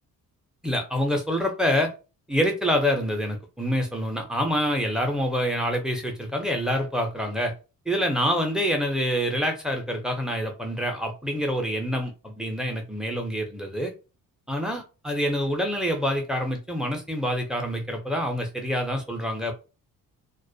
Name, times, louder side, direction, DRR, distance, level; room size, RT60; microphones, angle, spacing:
voice 1, 0.6-1.9 2.3-7.5 7.9-13.9 14.5-19.5, equal, ahead, 0.4 m, -26 dB
2.3 x 2.1 x 2.6 m
cardioid pair, 125°, 35 cm